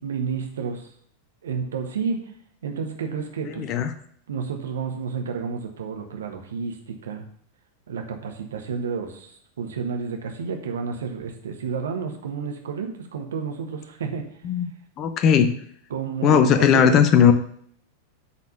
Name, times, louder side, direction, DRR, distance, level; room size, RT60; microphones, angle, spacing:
voice 1, 0.0-0.9 1.4-2.2 2.6-3.7 4.3-7.2 7.9-14.2 15.9-17.0, right 6 dB, 65° right, 4 dB, 1.5 m, -30 dB
voice 2, 3.6-3.9 14.4-14.7 15.0-15.5 16.2-17.3, left 8 dB, 35° left, 9 dB, 0.9 m, -17 dB
8.5 x 4.2 x 6.5 m, 0.62 s
figure-of-eight pair, 90°, 0 cm